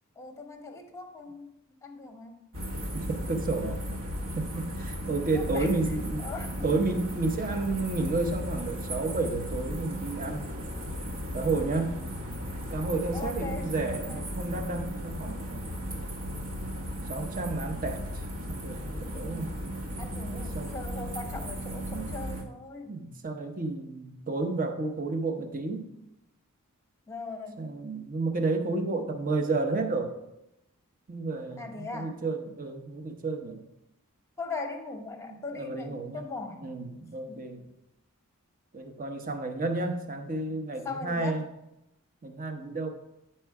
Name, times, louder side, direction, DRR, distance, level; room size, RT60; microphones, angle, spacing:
voice 1, 0.2-2.4 5.3-5.7 6.2-6.7 13.1-14.3 19.2-19.5 20.0-22.9 27.1-27.7 31.6-32.2 34.4-37.4 40.8-41.4, left 3 dB, 15° left, 4 dB, 0.9 m, -40 dB
sound 1, 2.5-22.4, equal, 65° right, 1.1 m, -36 dB
voice 2, 2.9-3.8 4.3-6.3 6.6-10.5 11.3-12.0 12.7-15.7 17.1-18.0 18.5-19.5 20.0-20.7 21.9-22.1 22.9-25.9 27.6-30.1 31.1-33.6 35.3-36.3 36.6-37.6 38.7-41.4 42.2-42.9, right 3 dB, 40° right, 6 dB, 0.8 m, -31 dB
9.3 x 4.5 x 4.7 m, 0.88 s
head